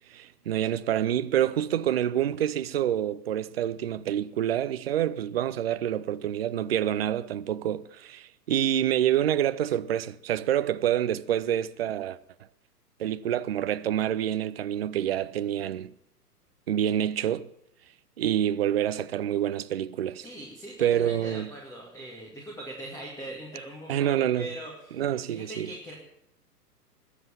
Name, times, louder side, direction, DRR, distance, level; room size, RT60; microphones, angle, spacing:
voice 1, 0.1-12.2 13.0-15.9 16.7-17.5 18.2-20.2 20.8-21.5 23.9-24.5 25.0-25.7, right 11 dB, 40° right, 0.6 m, -27 dB
voice 2, 20.2-25.9, right 1 dB, 5° left, 2.3 m, -41 dB
21.0 x 7.9 x 7.2 m
figure-of-eight pair, 115°, 48 cm